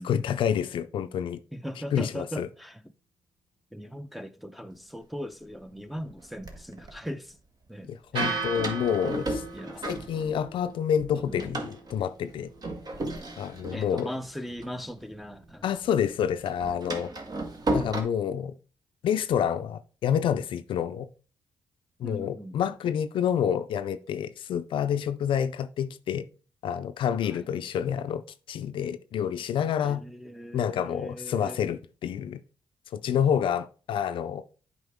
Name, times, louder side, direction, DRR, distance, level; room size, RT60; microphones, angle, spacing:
voice 1, 0.0-1.4 1.9-2.5 7.9-9.4 9.8-12.5 13.4-14.1 15.6-17.1 17.7-18.6 19.0-21.1 22.0-26.2 26.6-28.2 28.5-30.0 30.5-32.4 32.9-34.4, left 8 dB, 70° left, 0.5 m, -28 dB
voice 2, 1.5-2.8 3.7-7.4 7.7-8.5 9.5-9.9 11.1-11.5 13.7-15.7 22.0-22.6 22.8-22.9 27.3-27.5 29.8-31.6, equal, ahead, 0.6 m, -39 dB
Door, 5.0-5.1 5.8-6.9 8.1-10.7 11.0-15.5 15.8-18.0, right 1 dB, 50° right, 1.4 m, -35 dB
sound 1, 8.1-16.3, right 4 dB, 80° right, 2.9 m, -40 dB
8.0 x 4.8 x 3.6 m
supercardioid pair, 55°, 9 cm